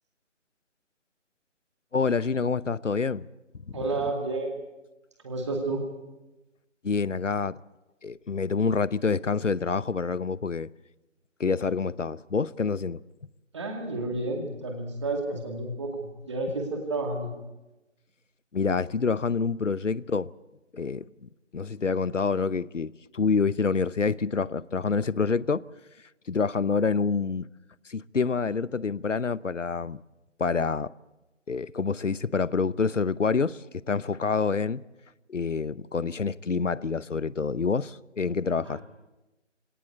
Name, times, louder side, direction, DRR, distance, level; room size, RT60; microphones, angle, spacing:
voice 1, 1.9-3.3 3.7-3.8 6.8-7.6 8.0-10.7 11.4-13.0 18.5-20.3 20.7-25.6 26.3-27.5 27.9-30.0 30.4-30.9 31.5-34.8 35.3-38.8, left 5 dB, 75° left, 0.8 m, -27 dB
voice 2, 3.7-4.6 5.2-5.8 13.5-17.3 38.6-38.8, right 2 dB, 25° right, 2.3 m, -31 dB
21.0 x 18.0 x 8.2 m
figure-of-eight pair, 160°, 37 cm